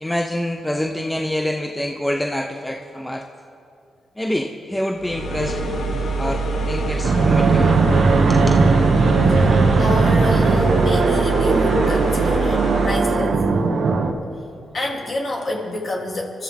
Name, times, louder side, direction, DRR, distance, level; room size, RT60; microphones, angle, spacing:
voice 1, 0.0-3.3 4.2-5.6 6.2-7.8 8.3-8.5, left 1 dB, 10° left, 4 dB, 0.9 m, -26 dB
sound 1, 4.9-13.0, right 3 dB, 85° left, 2.9 m, -24 dB
Fixed-wing aircraft airplane, 7.0-14.1, right 4 dB, 65° right, 1.3 m, -18 dB
voice 2, 9.8-13.3 14.7-16.4, left 1 dB, 50° left, -1 dB, 3.4 m, -28 dB
25.5 x 14.0 x 3.7 m, 2.6 s
cardioid pair, 65°, 0 cm